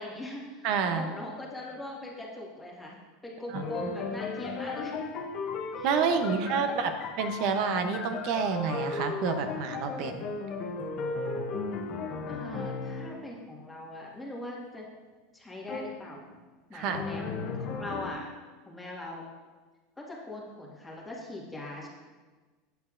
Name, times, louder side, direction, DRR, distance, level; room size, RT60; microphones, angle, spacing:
voice 1, 0.0-5.0 5.8-6.8 12.3-14.9 15.3-16.2 16.7-18.3 18.6-19.2 20.0-21.9, left 1 dB, 10° left, -3 dB, 1.6 m, -41 dB
voice 2, 0.6-1.1 3.5-3.9 4.5-4.6 5.8-6.9 7.2-10.3 16.7-17.0, right 6 dB, 60° right, 7 dB, 0.7 m, -29 dB
sound 1, 3.5-13.2 15.7-16.0 16.9-18.1, left 4 dB, 45° left, 0.7 m, -35 dB
8.0 x 6.2 x 2.5 m, 1.3 s
hypercardioid pair, 100°, 0 cm